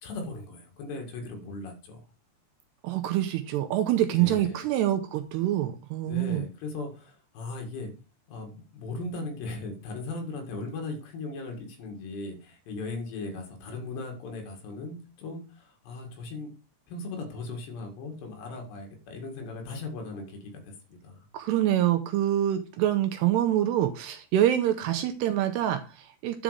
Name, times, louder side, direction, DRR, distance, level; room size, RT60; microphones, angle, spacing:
voice 1, 0.0-2.0 4.1-4.6 6.0-7.9 8.3-16.5 16.9-21.3, left 3 dB, 70° left, 4 dB, 3.9 m, -38 dB
voice 2, 2.8-6.4 21.3-26.4, right 12 dB, 80° right, 7 dB, 2.6 m, -26 dB
10.5 x 5.0 x 5.0 m, 0.34 s
omnidirectional pair, 5.3 m